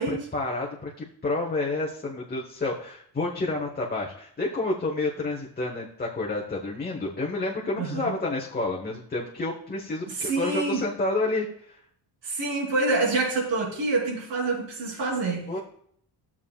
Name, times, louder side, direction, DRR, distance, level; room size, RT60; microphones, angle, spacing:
voice 1, 0.1-11.8 15.5-15.6, left 2 dB, 20° left, -2 dB, 1.1 m, -29 dB
voice 2, 7.8-8.1 10.1-10.8 12.2-15.5, right 3 dB, 85° right, -2 dB, 3.3 m, -27 dB
13.5 x 7.3 x 2.3 m, 0.65 s
cardioid pair, 130°, 43 cm